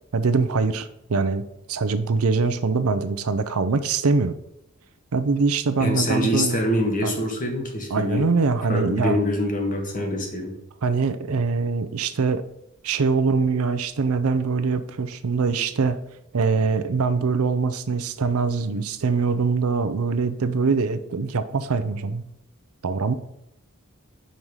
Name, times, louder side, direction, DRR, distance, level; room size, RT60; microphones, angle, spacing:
voice 1, 0.1-4.3 5.1-6.6 7.0-7.1 7.9-9.2 10.8-12.4 12.8-16.0 16.3-22.2 22.8-23.1, right 4 dB, 85° right, 11 dB, 0.6 m, -23 dB
voice 2, 5.8-8.3 8.7-10.6, left 1 dB, 40° left, 2 dB, 1.4 m, -25 dB
5.6 x 5.1 x 4.7 m, 0.80 s
head